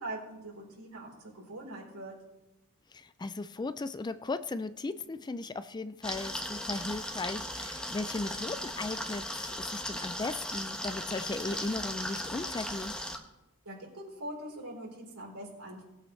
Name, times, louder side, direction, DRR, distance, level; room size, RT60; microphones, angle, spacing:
voice 1, 0.0-2.1 13.7-15.8, right 1 dB, 80° right, -2 dB, 4.1 m, -42 dB
voice 2, 2.9-12.9, left 3 dB, 20° left, 13 dB, 0.3 m, -37 dB
sound 1, 6.0-13.2, left 1 dB, 5° left, 1.0 m, -37 dB
19.0 x 8.5 x 3.2 m, 0.99 s
head